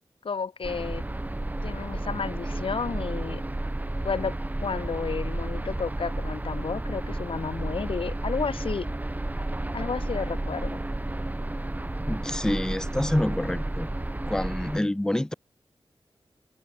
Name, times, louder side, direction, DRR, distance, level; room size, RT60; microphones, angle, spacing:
voice 1, 0.2-1.0 1.6-3.4 4.0-4.3 4.6-8.9 9.7-10.8, left 5 dB, 65° left, 0.8 m, -32 dB
sound 1, 0.6-14.8, right 1 dB, 15° right, 0.9 m, -32 dB
sound 2, 0.6-13.2, right 3 dB, 50° right, 5.3 m, -52 dB
voice 2, 12.1-13.9 14.3-15.3, left 1 dB, 5° left, 0.5 m, -27 dB
wide cardioid pair, 105°, 10 cm